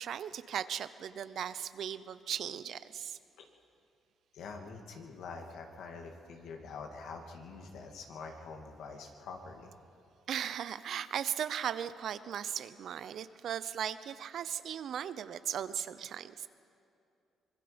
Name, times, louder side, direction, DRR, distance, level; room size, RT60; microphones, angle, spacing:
voice 1, 0.0-3.2 10.3-16.5, right 9 dB, 65° right, 14 dB, 0.7 m, -37 dB
voice 2, 4.3-9.7, left 4 dB, 80° left, 3 dB, 2.3 m, -45 dB
25.0 x 22.0 x 5.2 m, 2.5 s
cardioid pair, 90°, 0 cm